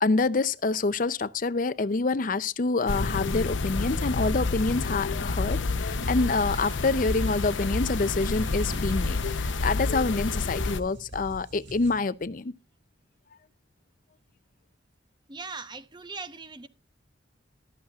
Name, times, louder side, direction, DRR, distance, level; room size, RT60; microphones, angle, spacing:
voice 1, 0.0-12.5, left 3 dB, 45° left, 0.5 m, -27 dB
sound 1, 2.9-10.8, left 3 dB, 90° left, 0.8 m, -29 dB
sound 2, 6.0-6.7 8.7-9.7, equal, 60° right, 1.4 m, -45 dB
sound 3, 6.3-12.0, right 1 dB, 75° right, 1.8 m, -43 dB
voice 2, 15.3-16.7, right 4 dB, 25° right, 0.9 m, -39 dB
14.5 x 13.0 x 2.4 m
head